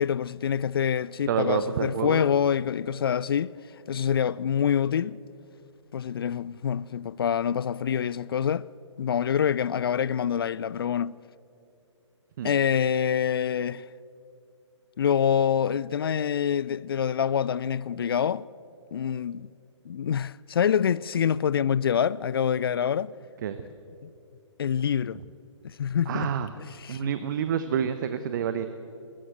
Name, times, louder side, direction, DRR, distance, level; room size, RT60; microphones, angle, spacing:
voice 1, 0.0-3.5 3.9-5.2 5.9-8.7 9.0-11.2 12.4-13.8 15.0-18.4 18.9-19.5 19.9-23.1 24.6-25.2 25.6-26.3 26.8-27.1, left 8 dB, 50° left, 0.4 m, -26 dB
voice 2, 1.3-2.2 12.4-12.6 23.4-23.6 26.1-26.5 26.9-28.7, right 8 dB, 40° right, 0.9 m, -28 dB
27.0 x 14.0 x 7.9 m
figure-of-eight pair, 130°, 16 cm